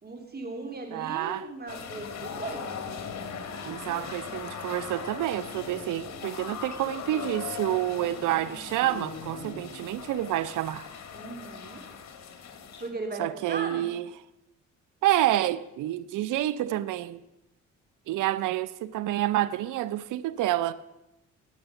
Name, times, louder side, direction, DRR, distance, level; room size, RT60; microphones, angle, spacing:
voice 1, 0.0-2.8 11.1-11.8 12.8-13.9, right 3 dB, 30° right, 3.1 m, -37 dB
voice 2, 0.9-1.5 3.6-10.9 13.2-14.1 15.0-17.2 18.1-20.7, right 14 dB, 85° right, 0.7 m, -28 dB
sound 1, 1.7-12.9, left 6 dB, 60° left, 2.2 m, -39 dB
15.5 x 8.7 x 7.0 m
cardioid pair, 90°, 30 cm